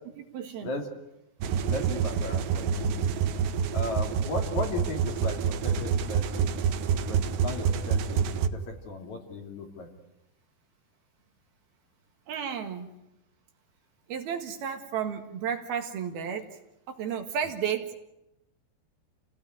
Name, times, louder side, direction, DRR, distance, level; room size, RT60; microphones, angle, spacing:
voice 1, 0.2-0.7 12.3-12.9 14.1-16.5 16.9-17.9, right 8 dB, 65° right, 5 dB, 3.5 m, -32 dB
sound 1, 1.4-8.5, right 7 dB, 90° right, 3.3 m, -27 dB
voice 2, 1.7-3.1 3.7-6.5 6.9-9.9, left 3 dB, 45° left, 3 dB, 3.9 m, -36 dB
29.5 x 18.0 x 9.6 m, 0.91 s
omnidirectional pair, 4.8 m